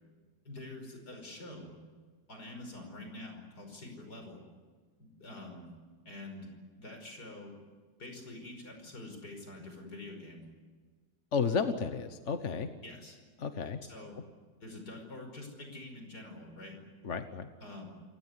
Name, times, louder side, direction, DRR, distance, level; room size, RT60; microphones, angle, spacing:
voice 1, 0.4-1.7 2.3-4.4 5.2-5.7 6.1-6.5 6.8-7.5 8.0-10.4 12.8-13.2 13.9-14.2 14.6-16.8 17.6-17.9, left 2 dB, 75° left, 4 dB, 5.9 m, -46 dB
voice 2, 11.3-12.7 13.4-13.8 17.0-17.5, left 5 dB, 50° left, 8 dB, 1.4 m, -32 dB
29.0 x 17.0 x 9.7 m, 1.5 s
omnidirectional pair, 1.7 m